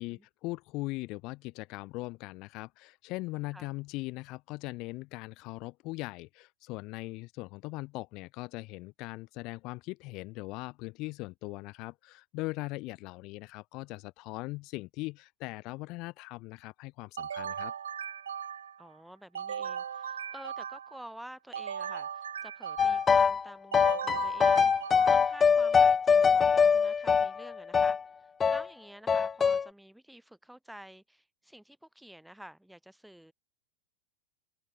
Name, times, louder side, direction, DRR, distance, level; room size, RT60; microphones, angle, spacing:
voice 1, 0.0-17.7, left 22 dB, 40° left, 4.0 m, -40 dB
sound 1, 17.2-18.8 19.3-21.0 21.5-23.2 23.7-25.4, right 8 dB, 65° right, 1.8 m, -38 dB
voice 2, 18.8-28.0 28.5-33.3, right 1 dB, ahead, 7.6 m, -50 dB
sound 2, 22.8-23.4 23.7-28.0 28.4-28.7 29.1-29.7, left 6 dB, 20° left, 0.5 m, -23 dB
open air
figure-of-eight pair, 90°, 0 cm